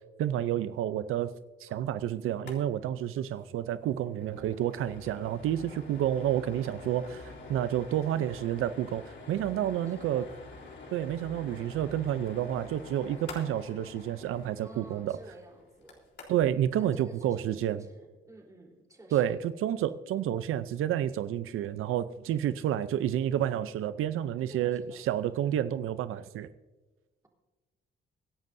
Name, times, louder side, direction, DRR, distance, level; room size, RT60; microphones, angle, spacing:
voice 1, 0.2-1.3 1.6-7.2 7.5-10.2 10.9-15.2 16.3-17.8 19.1-26.5, right 11 dB, 80° right, 13 dB, 0.5 m, -30 dB
sound 1, 2.3-2.6 2.9-3.0 3.3-3.5 3.9-16.6, left 3 dB, 60° left, 3.7 m, -47 dB
voice 2, 3.8-4.2 9.6-10.3 14.6-16.1 16.8-19.4 22.3-22.6 24.5-25.0, right 1 dB, 15° right, -1 dB, 3.7 m, -53 dB
24.5 x 11.0 x 2.6 m, 1.2 s
cardioid pair, 120°, 21 cm